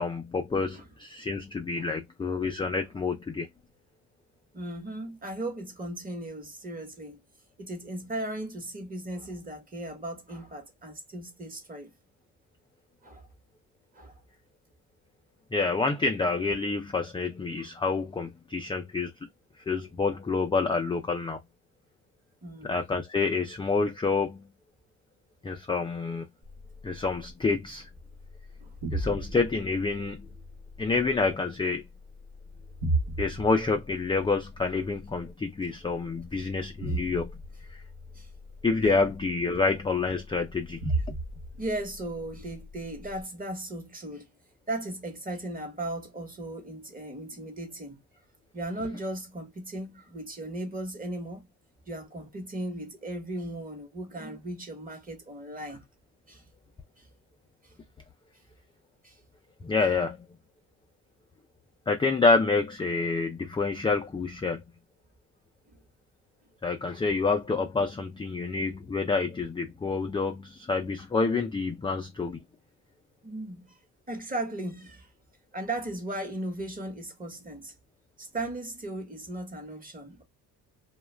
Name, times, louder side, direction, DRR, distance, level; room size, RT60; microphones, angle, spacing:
voice 1, 0.0-3.5 15.5-19.1 19.7-21.4 22.6-24.5 25.4-26.3 26.8-27.9 28.9-30.3 30.8-31.9 33.2-37.4 38.6-40.8 59.6-60.3 61.9-64.6 66.6-72.4, left 4 dB, 15° left, 0.3 m, -28 dB
voice 2, 4.5-7.2 7.6-11.9 13.0-13.3 13.9-14.1 22.4-22.8 26.9-27.0 28.6-28.8 38.1-38.3 41.5-44.3 44.7-48.0 48.5-51.4 51.9-55.8 56.3-56.4 57.0-57.1 57.6-57.7 59.0-59.1 73.2-73.7 74.1-75.1 75.5-77.7 78.2-80.2, right 1 dB, 25° right, 1.0 m, -37 dB
sound 1, 26.4-43.2, right 2 dB, 65° right, 1.1 m, -37 dB
2.3 x 2.2 x 3.1 m
cardioid pair, 100°, 36 cm